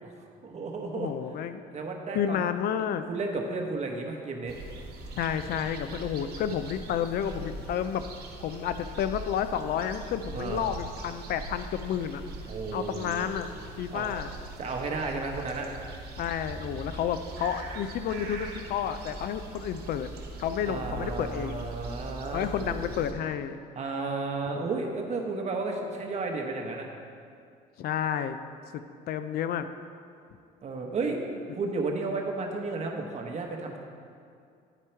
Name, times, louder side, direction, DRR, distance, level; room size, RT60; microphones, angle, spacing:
voice 1, 0.4-1.1 1.7-2.5 3.1-4.5 10.3-10.7 12.5-13.3 13.9-14.1 14.6-15.7 20.7-23.0 23.7-26.9 30.6-31.2 31.5-33.8, right 3 dB, 40° right, 2 dB, 1.0 m, -33 dB
voice 2, 1.0-1.6 2.1-3.1 5.2-8.0 8.4-12.2 12.7-13.5 13.8-14.3 16.2-20.1 20.4-21.6 22.3-23.6 24.6-24.7 27.8-28.4 28.7-29.7, left 9 dB, 65° left, 11 dB, 0.4 m, -31 dB
sound 1, 4.5-23.1, right 2 dB, 65° right, 1.2 m, -41 dB
10.0 x 4.5 x 4.4 m, 2.3 s
cardioid pair, 110°, 17 cm